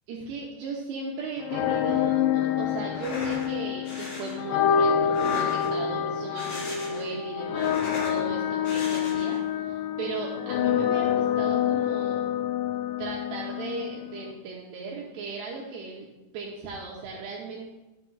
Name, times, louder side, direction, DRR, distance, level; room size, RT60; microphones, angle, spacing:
voice 1, 0.1-12.3 13.0-16.1 16.3-17.7, right 3 dB, 80° right, -2 dB, 2.6 m, -37 dB
sound 1, 1.4-14.3, left 9 dB, 85° left, 2.3 m, -27 dB
sound 2, 2.9-3.5 3.9-4.4 5.0-5.9 6.3-7.1 7.4-8.2 8.6-9.4, left 2 dB, 55° left, 3.4 m, -37 dB
12.0 x 7.6 x 2.4 m, 1.0 s
omnidirectional pair, 5.4 m